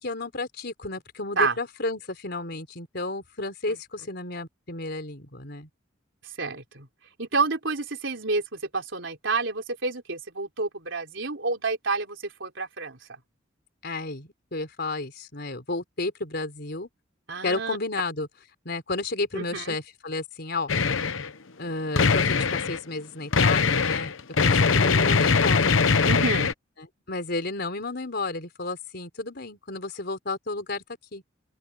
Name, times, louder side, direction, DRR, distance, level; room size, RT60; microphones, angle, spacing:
voice 1, 0.0-5.7 13.8-16.9 17.4-18.3 18.6-20.7 21.6-24.1 24.4-25.8 26.8-30.8 31.1-31.2, left 2 dB, 55° left, 4.3 m, -32 dB
voice 2, 6.4-6.9 7.2-13.0 17.3-17.8 19.3-19.8 26.1-26.5, right 4 dB, 65° right, 4.0 m, -29 dB
sound 1, 20.7-21.3 21.9-22.8 23.3-26.5, left 5 dB, 80° left, 0.9 m, -21 dB
open air
head